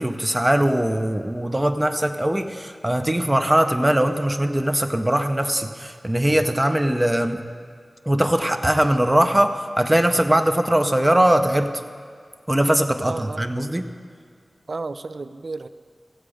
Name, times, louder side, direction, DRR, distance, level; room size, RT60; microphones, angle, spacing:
voice 1, 0.0-7.5 8.1-11.7 12.5-13.9, right 1 dB, 15° right, 6 dB, 0.6 m, -21 dB
voice 2, 13.0-13.4 14.7-15.7, right 3 dB, 60° right, 12 dB, 0.4 m, -32 dB
17.0 x 7.5 x 4.9 m, 2.1 s
wide cardioid pair, 90°, 0 cm